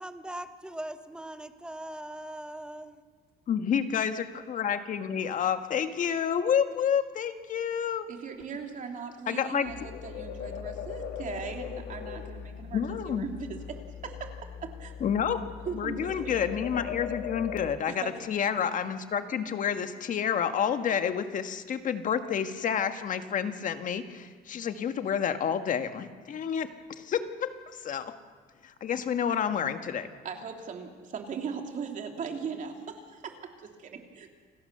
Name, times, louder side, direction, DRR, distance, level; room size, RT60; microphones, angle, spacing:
voice 1, 0.0-3.0, right 1 dB, 5° right, 9 dB, 1.4 m, -40 dB
voice 2, 3.5-8.1 9.3-9.7 12.7-13.3 15.0-15.4 15.7-26.7 27.0-27.5 27.8-28.1 28.6-30.1, left 8 dB, 50° left, 8 dB, 1.6 m, -29 dB
voice 3, 8.1-14.3 14.6-14.9 15.7-16.3 17.9-18.2 30.2-34.3, right 6 dB, 50° right, 3 dB, 3.1 m, -39 dB
sound 1, 9.6-17.8, left 8 dB, 90° left, 1.9 m, -40 dB
28.5 x 17.0 x 6.9 m, 1.5 s
cardioid pair, 110°, 17 cm